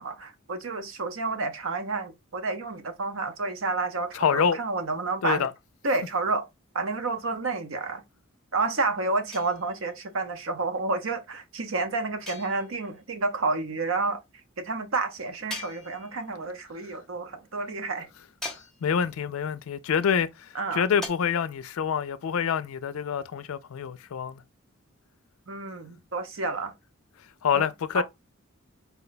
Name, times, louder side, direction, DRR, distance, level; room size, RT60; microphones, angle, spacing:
voice 1, 0.0-5.5 5.8-6.5 6.7-8.0 8.5-14.2 14.6-18.1 20.5-20.9 25.5-26.7 27.5-27.7 27.9-28.0, right 3 dB, 65° right, 0.7 m, -30 dB
voice 2, 4.1-4.6 5.2-5.5 18.8-24.4 27.4-28.0, left 7 dB, 80° left, 0.4 m, -26 dB
sound 1, 9.3-10.1 12.3-13.0 15.5-16.4 18.4-19.2 21.0-21.1, left 2 dB, ahead, 0.7 m, -41 dB
4.2 x 2.2 x 3.9 m
head